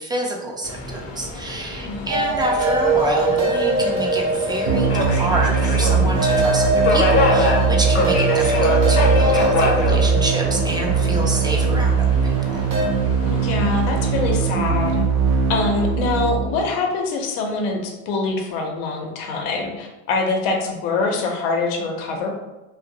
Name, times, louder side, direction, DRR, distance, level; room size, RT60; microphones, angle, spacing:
voice 1, 0.0-12.6, right 1 dB, 10° right, -1 dB, 0.4 m, -27 dB
Subway metro underground, 0.6-14.2, left 2 dB, 35° left, 0.6 m, -26 dB
voice 2, 1.8-2.4 13.3-15.0 15.5-22.3, left 3 dB, 75° left, 2 dB, 0.7 m, -24 dB
sound 1, 2.1-12.9, right 2 dB, 40° right, 0.7 m, -23 dB
sound 2, 4.7-16.6, right 5 dB, 80° right, 0.6 m, -21 dB
2.5 x 2.0 x 2.7 m, 1.1 s
hypercardioid pair, 75°, 42 cm